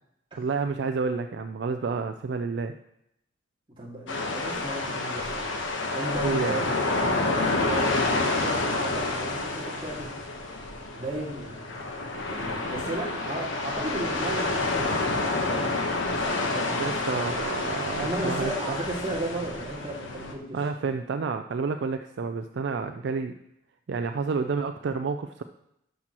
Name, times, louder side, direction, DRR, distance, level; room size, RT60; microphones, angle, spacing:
voice 1, 0.4-2.7 6.2-6.7 16.8-18.8 20.5-23.3 23.9-25.4, right 4 dB, 60° right, 7 dB, 0.4 m, -29 dB
voice 2, 3.8-5.6 5.9-6.7 7.2-10.1 11.0-17.3 18.0-20.6, right 1 dB, 25° right, -5 dB, 2.1 m, -35 dB
sound 1, 4.1-20.3, left 2 dB, 70° left, 1.1 m, -29 dB
11.5 x 6.2 x 2.9 m, 0.78 s
head